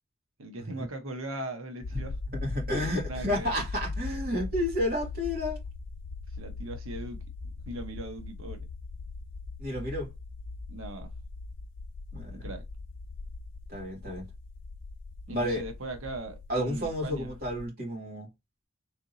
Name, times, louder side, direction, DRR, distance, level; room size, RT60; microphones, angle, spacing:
voice 1, 0.4-2.2 3.1-3.5 6.4-7.2 7.7-8.6 10.7-11.1 12.3-12.6 15.3-17.3, right 1 dB, 85° right, 1.0 m, -39 dB
sound 1, 1.8-17.7, left 3 dB, 60° left, 0.4 m, -40 dB
voice 2, 2.4-5.6 9.6-10.1 12.1-12.5 13.7-14.3 15.3-15.6 16.5-18.3, left 1 dB, 45° right, 2.4 m, -31 dB
3.9 x 3.3 x 2.7 m
head